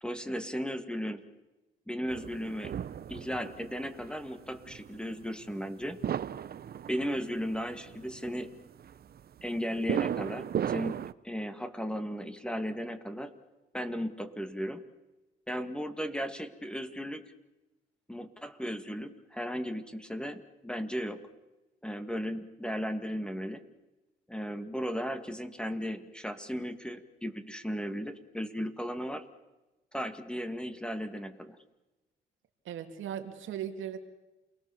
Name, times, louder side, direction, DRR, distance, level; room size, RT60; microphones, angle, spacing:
voice 1, 0.0-1.2 1.9-2.7 3.1-6.0 6.9-8.5 9.4-11.0 11.2-13.3 13.7-14.8 15.5-17.2 18.1-21.2 21.8-23.6 24.3-29.2 29.9-31.6, equal, 5° left, 9 dB, 2.0 m, -36 dB
sound 1, 2.1-11.1, right 9 dB, 50° right, 0.8 m, -36 dB
voice 2, 32.6-34.0, right 9 dB, 75° right, 6 dB, 2.6 m, -38 dB
28.5 x 20.5 x 7.2 m, 1.1 s
cardioid pair, 90°, 20 cm